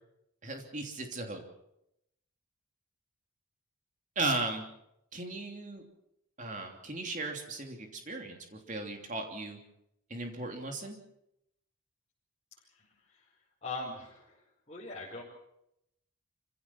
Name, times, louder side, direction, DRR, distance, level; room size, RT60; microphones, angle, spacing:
voice 1, 0.4-1.4 4.1-4.6 5.1-5.8 6.4-9.6 10.1-11.0, right 2 dB, 35° right, 3 dB, 3.1 m, -36 dB
voice 2, 12.7-13.3 13.6-15.2, left 3 dB, 30° left, -7 dB, 5.0 m, -42 dB
26.5 x 16.0 x 7.2 m, 0.81 s
head